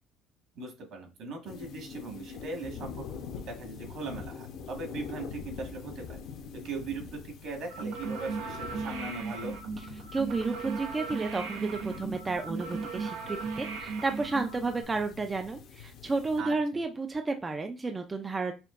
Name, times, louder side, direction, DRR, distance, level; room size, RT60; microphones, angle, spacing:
voice 1, 0.5-6.2 6.6-9.5 16.4-16.5, right 3 dB, 60° right, 3 dB, 1.6 m, -39 dB
sound 1, 1.4-16.4, left 6 dB, 60° left, 0.8 m, -45 dB
sound 2, 7.7-14.8, right 4 dB, 85° right, 0.8 m, -37 dB
voice 2, 10.1-18.5, right 3 dB, 15° right, 6 dB, 0.4 m, -32 dB
5.7 x 2.7 x 2.5 m, 0.29 s
cardioid pair, 155°, 0 cm